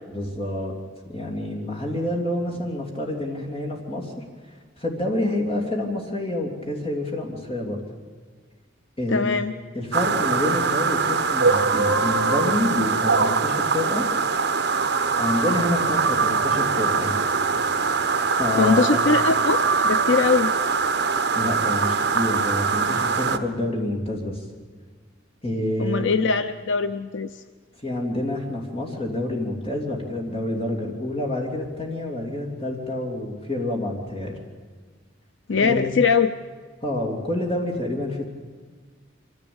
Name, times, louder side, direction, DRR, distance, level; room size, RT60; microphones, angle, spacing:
voice 1, 0.1-0.7 1.0-4.2 4.8-7.8 9.0-9.3 9.7-14.1 15.2-17.2 18.2-19.0 21.3-24.4 25.4-26.1 27.8-34.4 35.6-36.0 36.8-38.3, left 1 dB, 30° left, -1 dB, 3.0 m, -28 dB
voice 2, 9.1-9.5 18.6-20.5 25.8-27.3 35.5-36.3, left 5 dB, 70° left, 10 dB, 0.6 m, -21 dB
sound 1, 9.9-23.4, right 4 dB, 55° right, 1.1 m, -22 dB
24.5 x 14.5 x 8.8 m, 1.5 s
head